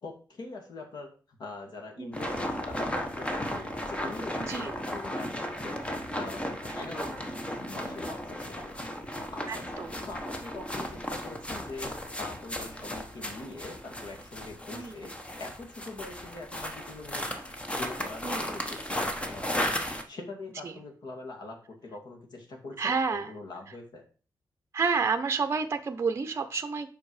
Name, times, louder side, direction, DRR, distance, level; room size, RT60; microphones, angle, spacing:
voice 1, 0.0-5.8 6.1-8.7 9.3-17.3 17.7-19.7 20.1-24.0, left 3 dB, 65° left, 1 dB, 2.2 m, -43 dB
sound 1, 2.1-20.0, equal, 15° left, 1.0 m, -35 dB
voice 2, 9.5-10.0 14.7-15.0 18.2-18.6 20.6-20.8 22.8-23.3 24.7-26.9, right 5 dB, 35° right, 7 dB, 0.7 m, -30 dB
7.7 x 5.2 x 4.8 m, 0.39 s
wide cardioid pair, 145°, 8 cm